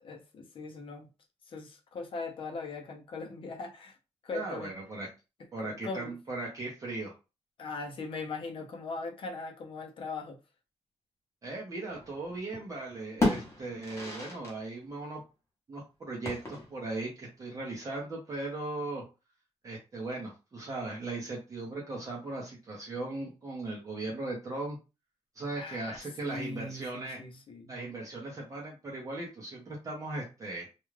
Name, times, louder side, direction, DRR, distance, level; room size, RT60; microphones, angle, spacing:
voice 1, 0.0-1.1 1.5-3.9 4.2-4.7 5.6-6.1 7.6-10.4 25.6-27.7, left 3 dB, 50° left, 0.6 m, -40 dB
voice 2, 4.3-5.1 5.5-7.1 11.4-15.2 15.7-19.0 19.6-24.8 25.3-27.2 27.7-30.7, right 2 dB, 30° right, 0.7 m, -38 dB
sound 1, 11.9-12.7 13.0-14.6 14.9-15.0 16.2-16.9, left 2 dB, 25° left, 0.9 m, -33 dB
2.4 x 2.2 x 3.1 m
wide cardioid pair, 175°, 12 cm